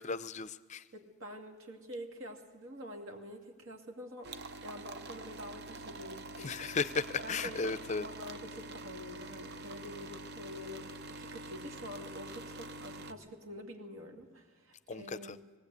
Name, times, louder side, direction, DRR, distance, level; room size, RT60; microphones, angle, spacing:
voice 1, 0.0-0.8 6.4-8.1 14.9-15.4, left 4 dB, 35° left, 15 dB, 0.5 m, -35 dB
voice 2, 0.9-4.3 4.6-6.7 7.2-15.4, equal, 70° right, 2 dB, 2.4 m, -47 dB
sound 1, 4.2-13.1, right 2 dB, 55° right, 0.8 m, -46 dB
19.0 x 18.0 x 8.3 m, 1.4 s
head